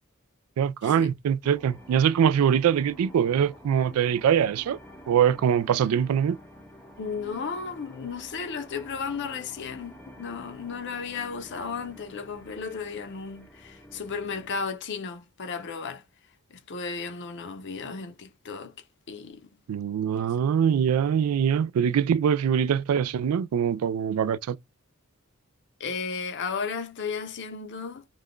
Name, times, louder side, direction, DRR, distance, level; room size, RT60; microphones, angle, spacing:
voice 1, 0.6-4.8 5.1-6.4 19.7-24.6, right 8 dB, 90° right, 0.3 m, -23 dB
sound 1, 1.4-14.8, equal, 5° left, 0.5 m, -49 dB
voice 2, 7.0-16.0 16.5-18.7 19.1-19.5 20.1-20.2 25.8-28.1, left 5 dB, 55° left, 0.6 m, -34 dB
2.4 x 2.2 x 3.5 m
head